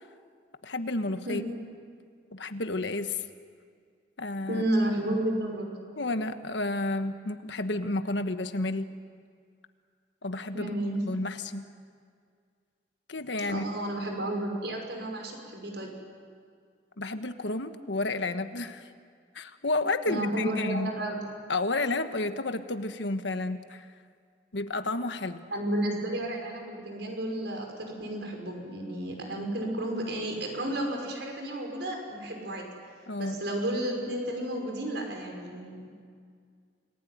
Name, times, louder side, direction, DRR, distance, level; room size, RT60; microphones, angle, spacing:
voice 1, 0.6-1.4 2.3-3.2 4.2-4.6 6.0-8.9 10.2-10.7 11.0-11.6 13.1-13.6 17.0-18.9 19.3-20.9 21.5-23.9 24.5-25.4 33.1-33.4, left 2 dB, 80° left, 9 dB, 1.4 m, -31 dB
voice 2, 4.5-5.7 10.5-11.1 13.1-13.2 13.5-15.9 20.1-21.2 25.5-32.7 33.2-36.0, right 1 dB, 70° right, 2 dB, 5.8 m, -32 dB
28.5 x 20.0 x 9.5 m, 2.1 s
head